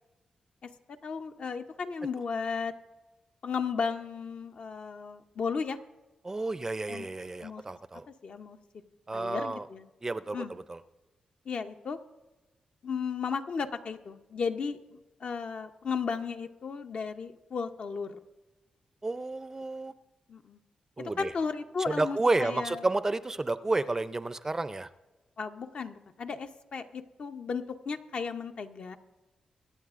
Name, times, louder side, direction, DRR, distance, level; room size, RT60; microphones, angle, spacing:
voice 1, 1.0-2.7 3.4-5.8 6.9-7.1 7.4-7.6 8.1-8.6 9.1-9.9 10.3-10.5 11.5-12.0 12.8-14.8 15.2-18.2 20.3-20.6 21.0-22.9 25.4-29.0, left 5 dB, 60° left, 7 dB, 0.7 m, -34 dB
voice 2, 6.2-8.0 9.1-9.7 10.0-10.8 19.0-19.9 21.0-21.3 21.9-24.9, right 2 dB, 25° right, 13 dB, 0.4 m, -31 dB
24.0 x 8.9 x 2.5 m, 1.1 s
cardioid pair, 85°, 2 cm